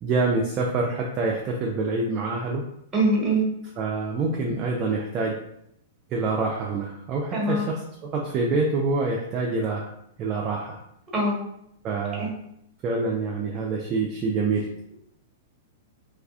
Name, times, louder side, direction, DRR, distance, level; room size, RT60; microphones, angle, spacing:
voice 1, 0.0-2.6 3.8-5.4 6.1-7.8 8.1-9.9 10.2-10.8 11.8-12.3 12.8-14.7, right 3 dB, 35° right, -1 dB, 0.4 m, -26 dB
voice 2, 2.9-3.5 7.3-7.6 11.1-11.3 12.2-12.3, right 2 dB, 20° right, -3 dB, 1.1 m, -22 dB
2.4 x 2.3 x 2.3 m, 0.76 s
hypercardioid pair, 105°, 0 cm